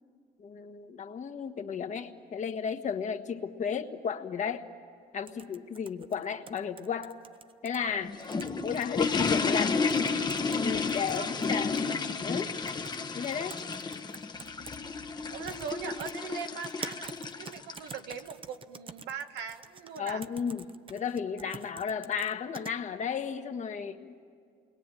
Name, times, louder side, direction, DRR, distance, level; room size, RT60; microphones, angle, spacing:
voice 1, 0.4-4.6 5.1-7.1 7.6-8.1 8.6-9.8 10.5-11.9 12.2-12.5 13.1-13.6 20.0-24.3, left 7 dB, 45° left, 6 dB, 1.5 m, -34 dB
sound 1, 5.3-7.8 8.2-8.9 9.3-9.4 9.9-10.6 10.9-11.9 12.7-13.0 13.2-14.8 15.5-15.7 16.0-22.7, right 5 dB, 30° right, 0.8 m, -46 dB
sound 2, 7.9-18.2, left 4 dB, 25° left, 1.1 m, -32 dB
voice 2, 15.3-20.2, right 7 dB, 80° right, 6 dB, 1.6 m, -40 dB
28.0 x 21.5 x 9.2 m, 2.3 s
cardioid pair, 110°, 17 cm